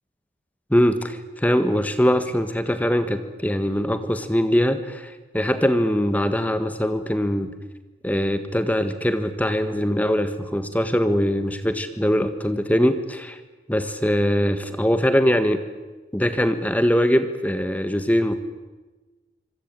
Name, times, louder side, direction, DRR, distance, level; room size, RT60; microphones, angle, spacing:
voice 1, 0.7-7.5 8.0-13.4 13.7-15.6 16.1-18.4, equal, 10° left, 9 dB, 1.6 m, -22 dB
25.5 x 25.5 x 9.0 m, 1.2 s
head